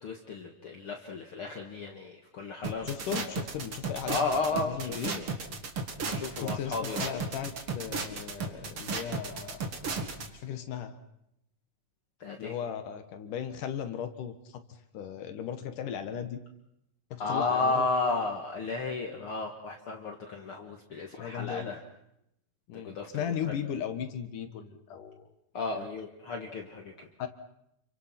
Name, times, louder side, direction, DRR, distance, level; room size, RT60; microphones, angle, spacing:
voice 1, 0.0-2.9 4.0-5.3 6.1-7.0 12.2-12.6 17.2-21.8 22.7-23.5 25.5-27.1, left 3 dB, 50° left, 2 dB, 2.2 m, -33 dB
sound 1, 2.6-10.3, right 4 dB, 45° right, 2.8 m, -34 dB
voice 2, 2.8-5.2 6.4-9.7 10.3-11.0 12.4-14.6 14.9-16.4 17.1-17.9 21.2-21.8 22.7-25.3 25.7-25.9 27.2-27.3, left 8 dB, 80° left, 8 dB, 2.9 m, -37 dB
29.0 x 24.5 x 5.9 m, 0.79 s
omnidirectional pair, 3.7 m